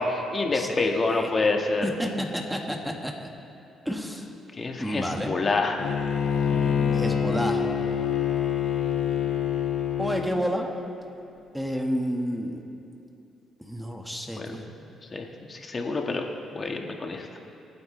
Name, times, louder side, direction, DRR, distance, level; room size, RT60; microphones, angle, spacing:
voice 1, 0.0-1.8 4.6-5.8 6.5-7.1 14.4-14.6 15.1-16.3 16.5-17.3, left 3 dB, 35° left, 2 dB, 1.7 m, -27 dB
voice 2, 0.5-1.3 1.8-3.3 3.8-4.3 4.8-5.3 6.9-7.7 10.0-10.7 11.5-12.6 13.6-14.6, equal, ahead, 2 dB, 1.6 m, -30 dB
Bowed string instrument, 5.8-10.3, left 8 dB, 70° left, 1.2 m, -26 dB
26.5 x 9.4 x 3.3 m, 2.7 s
cardioid pair, 90°, 0 cm